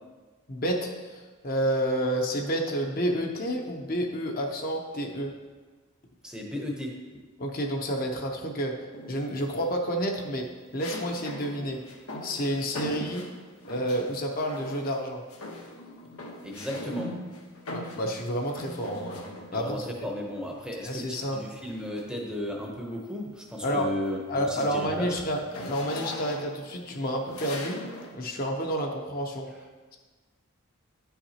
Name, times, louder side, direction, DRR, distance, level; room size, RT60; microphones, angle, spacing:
voice 1, 0.5-5.3 7.4-8.7 9.1-10.5 10.7-11.8 12.2-13.2 13.6-15.2 17.7-19.2 19.5-19.9 20.8-21.4 23.6-23.9 24.3-27.8 28.1-29.5, equal, 40° left, 1 dB, 0.7 m, -29 dB
voice 2, 6.2-7.2 12.8-12.9 16.4-17.1 19.5-25.1, left 1 dB, 5° right, -1 dB, 0.7 m, -35 dB
sound 1, 8.9-9.5 10.8-14.1 14.5-15.0 15.3-19.7 20.9-22.3 22.8-23.0 23.4-28.2, left 1 dB, 80° left, 1.1 m, -41 dB
10.5 x 5.7 x 2.9 m, 1.4 s
head